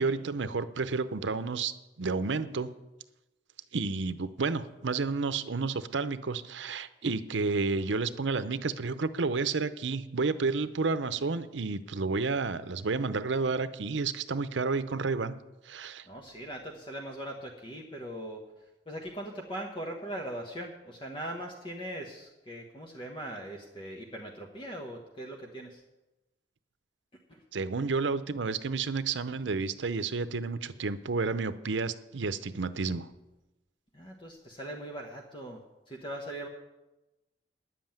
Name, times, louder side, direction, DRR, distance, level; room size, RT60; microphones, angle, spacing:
voice 1, 0.0-1.7 2.0-2.7 3.7-15.3 15.7-16.1 27.5-33.1, right 4 dB, 80° right, 13 dB, 0.7 m, -31 dB
voice 2, 16.1-18.5 18.9-25.8 27.3-27.4 33.9-36.5, right 1 dB, 30° left, 1 dB, 1.2 m, -40 dB
10.0 x 7.7 x 9.0 m, 1.0 s
head